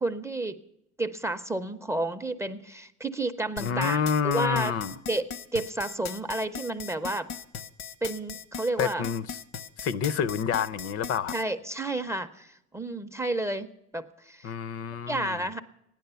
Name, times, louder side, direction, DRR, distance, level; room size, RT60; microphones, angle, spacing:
voice 1, 0.0-0.6 1.0-4.7 5.1-5.3 5.5-7.3 8.0-9.0 11.3-13.7 13.9-14.5 15.1-15.6, right 2 dB, 10° right, 0.4 m, -31 dB
sound 1, 3.6-11.4, left 7 dB, 70° left, 0.9 m, -39 dB
voice 2, 3.6-5.0 8.8-9.4 9.8-11.3 14.4-15.5, left 7 dB, 55° left, 0.6 m, -28 dB
15.5 x 10.5 x 6.7 m
cardioid pair, 165°, 29 cm